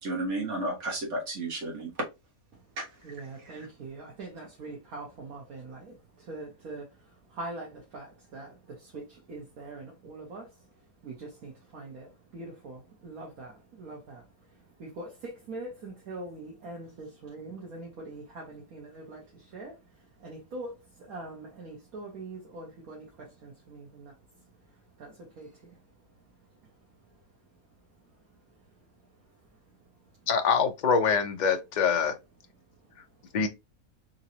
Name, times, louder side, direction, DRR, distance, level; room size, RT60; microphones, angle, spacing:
voice 1, 0.0-1.9 3.5-3.6, right 2 dB, 55° right, 1.6 m, -32 dB
voice 2, 3.0-25.8 26.6-27.2 28.0-29.8 32.7-33.3, right 2 dB, 75° right, 1.5 m, -44 dB
voice 3, 30.3-32.1 33.3-33.5, left 6 dB, 60° left, 0.4 m, -24 dB
3.9 x 2.9 x 2.7 m
omnidirectional pair, 1.5 m